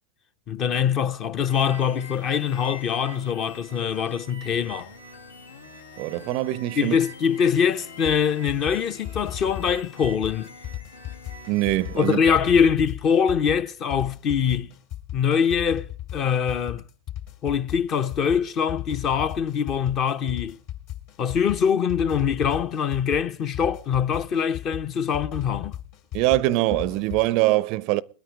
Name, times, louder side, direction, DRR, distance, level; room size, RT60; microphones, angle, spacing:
voice 1, 0.5-4.9 6.8-10.5 12.0-14.7 15.1-16.8 17.4-20.6 21.2-25.7, left 7 dB, 30° left, 0.8 m, -23 dB
sound 1, 1.5-12.1, left 2 dB, 80° left, 1.8 m, -44 dB
voice 2, 6.0-7.0 11.5-12.2 26.1-28.0, right 17 dB, 40° right, 0.5 m, -23 dB
sound 2, 8.0-27.3, left 13 dB, 50° left, 3.5 m, -36 dB
21.5 x 9.2 x 4.7 m
figure-of-eight pair, 90°, 0 cm